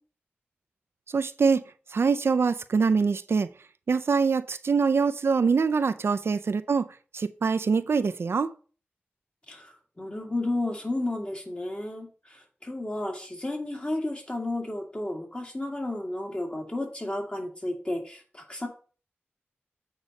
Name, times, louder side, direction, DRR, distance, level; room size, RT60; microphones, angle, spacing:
voice 1, 1.1-1.6 1.9-3.5 3.9-6.9 7.1-8.5, right 5 dB, 75° right, 0.4 m, -24 dB
voice 2, 9.5-18.7, left 1 dB, 30° left, 2.1 m, -32 dB
8.1 x 4.0 x 5.2 m
wide cardioid pair, 65°, 4 cm